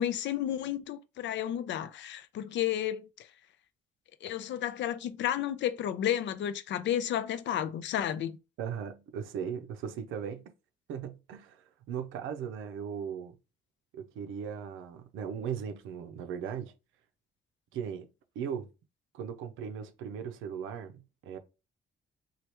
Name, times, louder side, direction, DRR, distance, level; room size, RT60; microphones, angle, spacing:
voice 1, 0.0-3.0 4.2-8.4, left 11 dB, 65° left, 0.4 m, -32 dB
voice 2, 8.6-10.5 10.9-13.4 13.9-16.7 17.7-18.1 18.4-18.7 19.1-21.4, right 7 dB, 90° right, 0.5 m, -38 dB
3.2 x 2.3 x 2.9 m
cardioid pair, 90°, 20 cm